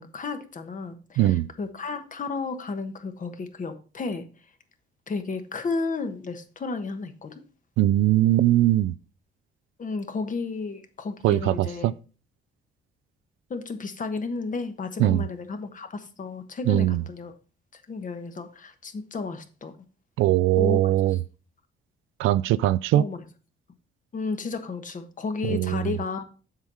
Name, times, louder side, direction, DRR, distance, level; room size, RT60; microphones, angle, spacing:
voice 1, 0.0-4.3 5.1-7.4 9.8-11.9 13.5-17.3 17.7-19.7 20.6-20.9 22.9-23.2 24.1-26.2, left 4 dB, 40° left, 1.2 m, -33 dB
voice 2, 1.2-1.5 7.8-8.9 11.2-11.9 15.0-15.2 16.7-17.0 20.2-21.2 22.2-23.1 25.4-26.0, right 14 dB, 90° right, 0.4 m, -21 dB
7.5 x 4.7 x 5.5 m
cardioid pair, 90°, 20 cm